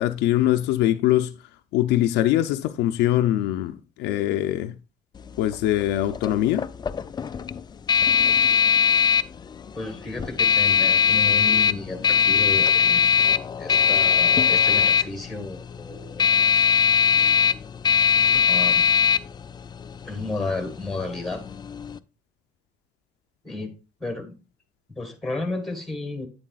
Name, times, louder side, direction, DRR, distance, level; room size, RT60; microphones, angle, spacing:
voice 1, 0.0-1.3 1.7-4.7 5.4-6.7, left 13 dB, 90° left, 0.5 m, -22 dB
sound 1, 5.2-22.0, left 7 dB, 25° left, 0.3 m, -21 dB
voice 2, 9.8-13.1 13.6-16.2 18.5-18.9 20.1-21.4 23.4-23.7 24.0-24.4 25.0-26.3, left 2 dB, ahead, 1.8 m, -32 dB
8.6 x 7.4 x 2.3 m
cardioid pair, 110°, 17 cm